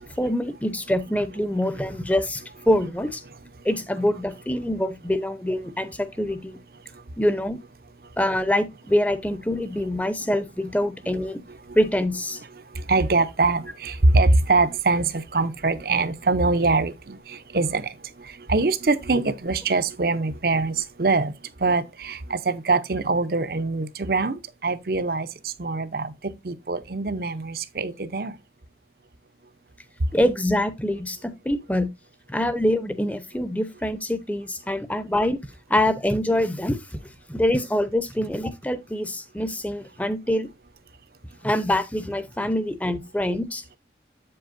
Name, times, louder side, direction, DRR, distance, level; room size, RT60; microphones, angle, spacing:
voice 1, 0.2-3.2 3.6-6.6 7.2-7.6 8.2-11.4 11.7-12.4 30.1-31.9 32.3-35.4 35.7-37.0 37.3-40.5 41.4-43.8, left 1 dB, 10° left, 0.7 m, -25 dB
voice 2, 12.5-21.3 21.6-28.3, right 3 dB, 55° right, 0.6 m, -24 dB
7.9 x 7.7 x 2.5 m
head